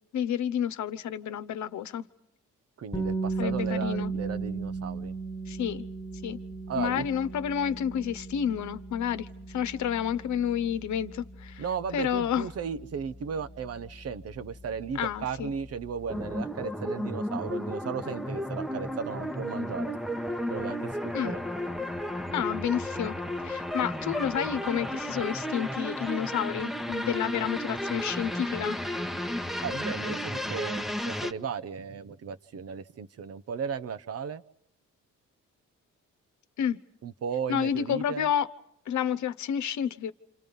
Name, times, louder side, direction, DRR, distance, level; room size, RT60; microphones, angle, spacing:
voice 1, 0.1-2.1 3.4-4.1 5.5-5.8 6.2-6.4 6.8-11.6 11.9-12.5 14.9-15.5 21.1-21.3 22.3-23.2 23.4-28.8 36.6-36.8 37.5-38.5 38.9-40.1, left 9 dB, 70° left, 1.1 m, -30 dB
voice 2, 2.8-5.1 6.7-7.1 11.6-19.9 20.5-20.9 21.2-21.4 29.6-34.4 37.0-38.3, right 6 dB, 55° right, 1.0 m, -35 dB
sound 1, 2.9-14.8, right 4 dB, 15° left, 1.6 m, -36 dB
sound 2, 16.1-31.3, left 1 dB, ahead, 1.1 m, -33 dB
28.0 x 28.0 x 5.4 m
cardioid pair, 90°, 30 cm